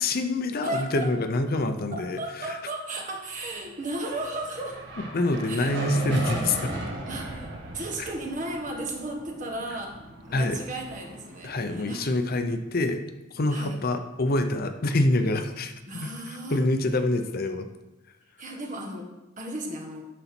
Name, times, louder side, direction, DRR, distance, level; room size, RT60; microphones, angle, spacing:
voice 1, 0.0-2.2 5.0-6.7 8.0-8.1 10.3-10.6 11.4-13.0 13.3-17.7, left 2 dB, 50° left, 7 dB, 0.6 m, -26 dB
voice 2, 0.6-1.1 1.9-4.8 5.5-5.7 7.1-10.0 10.2-12.1 13.5-13.8 15.9-16.7 18.4-19.1 19.4-20.1, right 1 dB, 40° right, 0 dB, 1.5 m, -35 dB
sound 1, 3.8-12.2, right 1 dB, 60° right, 1.6 m, -37 dB
11.0 x 4.1 x 6.0 m, 1.0 s
head